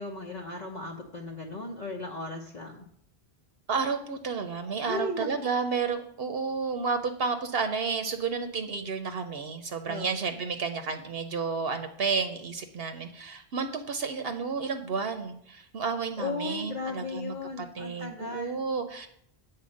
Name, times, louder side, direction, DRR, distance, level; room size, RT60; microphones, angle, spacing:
voice 1, 0.0-2.9 4.8-5.3 9.9-10.2 16.2-18.6, left 3 dB, 45° left, 0 dB, 0.9 m, -36 dB
voice 2, 3.7-19.1, right 5 dB, 70° right, 7 dB, 0.9 m, -31 dB
8.4 x 4.4 x 6.3 m, 0.67 s
omnidirectional pair, 1.1 m